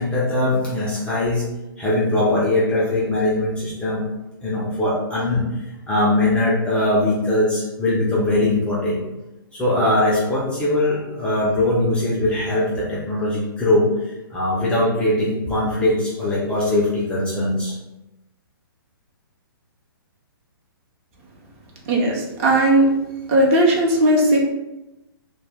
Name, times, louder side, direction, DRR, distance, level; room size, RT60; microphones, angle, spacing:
voice 1, 0.0-1.4 1.8-4.0 4.4-5.5 5.9-9.0 9.5-13.9 14.3-17.8, left 1 dB, 10° left, -6 dB, 0.4 m, -21 dB
voice 2, 21.9-22.9 23.3-24.4, right 1 dB, 35° right, -1 dB, 0.6 m, -17 dB
2.1 x 2.1 x 3.3 m, 0.96 s
hypercardioid pair, 140°, 12 cm